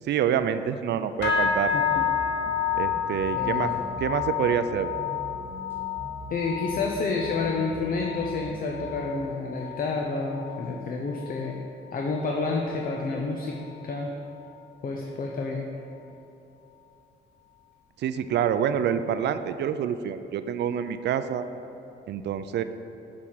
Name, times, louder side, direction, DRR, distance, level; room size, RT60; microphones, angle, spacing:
voice 1, 0.1-1.7 2.7-3.7 4.0-4.9 18.0-21.5 22.1-22.6, right 9 dB, 60° right, 11 dB, 0.4 m, -27 dB
sound 1, 1.2-10.8 11.1-11.5 11.9-12.2 12.8-12.9, left 7 dB, 65° left, 1.0 m, -30 dB
sound 2, 1.2-9.2, equal, 10° right, 1.6 m, -43 dB
voice 2, 1.7-2.0 3.3-3.8 6.3-11.5 11.9-13.6 13.8-14.1 14.8-15.6, left 3 dB, 45° left, 1 dB, 0.6 m, -29 dB
6.7 x 4.8 x 5.5 m, 2.9 s
cardioid pair, 90°, 20 cm